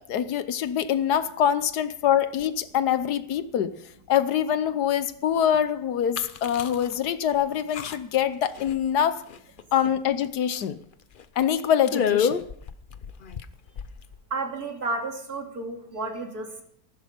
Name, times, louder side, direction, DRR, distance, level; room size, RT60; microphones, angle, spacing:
voice 1, 0.1-3.8 4.1-9.2 9.7-10.8 11.4-12.4, left 9 dB, 75° left, 1.4 m, -24 dB
sound 1, 6.2-6.9 7.3-7.4 7.7-8.2 8.5-9.0 9.3-9.9 10.2-10.3 10.6-10.7 11.2-11.4 11.9-14.2, left 7 dB, 55° left, 0.6 m, -29 dB
voice 2, 14.3-16.6, right 3 dB, 65° right, 3.3 m, -32 dB
15.0 x 12.5 x 5.2 m
omnidirectional pair, 1.7 m